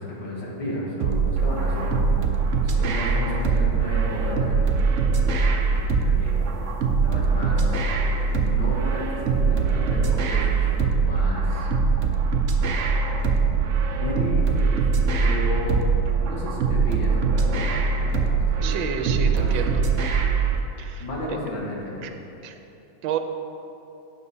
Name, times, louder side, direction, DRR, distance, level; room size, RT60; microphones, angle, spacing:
voice 1, 0.0-6.4 7.0-7.8 8.4-11.7 12.0-12.1 13.9-14.9 15.2-15.8 16.2-18.3 18.6-19.6 21.0-22.1, equal, 75° left, -5 dB, 2.2 m, -33 dB
sound 1, 1.0-20.6, right 4 dB, 65° right, 0.7 m, -22 dB
voice 2, 18.6-19.8 20.8-21.1 22.0-22.1 22.4-22.6 23.0-23.2, right 8 dB, 85° right, 6 dB, 1.4 m, -30 dB
9.5 x 5.9 x 5.5 m, 2.8 s
omnidirectional pair, 2.1 m